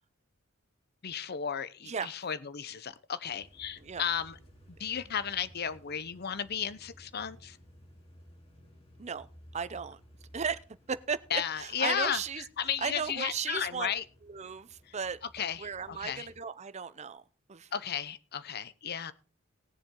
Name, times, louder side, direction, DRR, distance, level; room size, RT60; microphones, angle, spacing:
voice 1, 1.0-4.3 4.8-7.6 11.3-12.2 12.6-14.0 15.3-16.3 17.7-19.1, left 8 dB, 50° left, 0.8 m, -34 dB
sound 1, 3.2-16.4, equal, 30° left, 3.6 m, -57 dB
voice 2, 9.5-10.0 10.3-10.6 10.9-13.9 14.2-17.7, right 6 dB, 35° right, 0.6 m, -36 dB
19.0 x 7.2 x 3.8 m
head